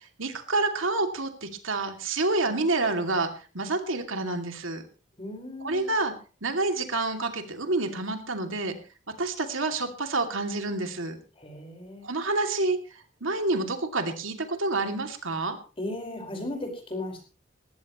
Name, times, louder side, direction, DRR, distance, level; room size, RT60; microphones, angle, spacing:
voice 1, 0.2-3.3 3.5-4.8 5.6-6.1 6.4-8.8 9.2-11.2 12.0-12.8 13.2-15.6, right 2 dB, 85° right, 5 dB, 2.6 m, -28 dB
voice 2, 5.2-5.9 11.4-12.1 15.8-17.2, left 1 dB, 30° left, 3 dB, 4.9 m, -36 dB
20.5 x 15.5 x 3.1 m, 0.35 s
head